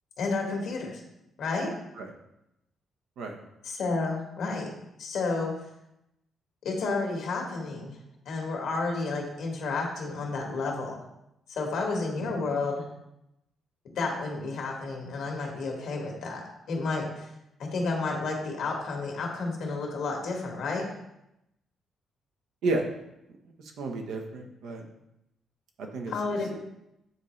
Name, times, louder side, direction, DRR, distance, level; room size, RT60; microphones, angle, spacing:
voice 1, 0.2-1.0 1.4-1.7 3.6-4.7 5.0-5.6 6.6-8.0 8.2-11.0 11.5-12.8 13.8-16.4 16.7-17.3 17.6-20.9 26.1-26.5, left 3 dB, 75° left, 0 dB, 1.6 m, -31 dB
voice 2, 23.6-24.8 25.8-26.1, right 2 dB, 85° right, 3 dB, 0.9 m, -32 dB
7.9 x 4.0 x 3.2 m, 0.87 s
cardioid pair, 95°, 0 cm